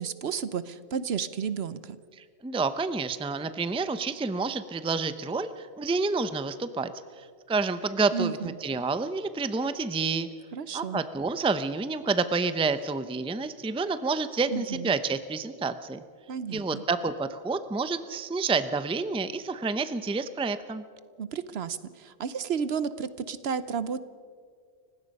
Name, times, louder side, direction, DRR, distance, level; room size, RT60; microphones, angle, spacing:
voice 1, 0.0-2.0 8.1-8.6 10.5-11.0 14.5-14.9 16.3-16.8 21.2-24.0, right 6 dB, 65° right, 15 dB, 1.0 m, -32 dB
voice 2, 2.1-6.9 7.2-10.3 10.7-16.0 16.5-20.8, right 4 dB, 5° right, 12 dB, 0.5 m, -29 dB
30.0 x 16.5 x 5.4 m, 2.1 s
omnidirectional pair, 1.2 m